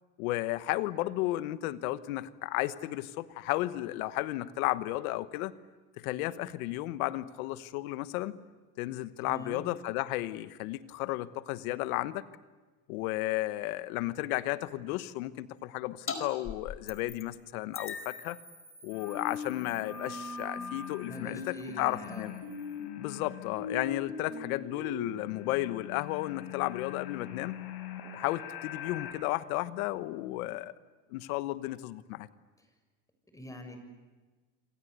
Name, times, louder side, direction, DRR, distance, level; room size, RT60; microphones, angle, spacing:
voice 1, 0.2-5.5 6.0-8.4 8.8-12.2 12.9-18.4 18.8-22.3 23.0-27.5 28.1-30.7 31.1-32.3, left 17 dB, 85° left, 14 dB, 1.3 m, -33 dB
voice 2, 9.2-9.6 21.0-22.3 33.3-33.8, equal, 10° left, 6 dB, 7.0 m, -44 dB
sound 1, 16.1-16.2 16.4-17.4 17.7-22.8, left 5 dB, 30° left, 4.8 m, -45 dB
sound 2, 18.9-29.1, left 6 dB, 65° left, 6.3 m, -41 dB
27.0 x 26.5 x 8.2 m, 1.3 s
supercardioid pair, 105°, 42 cm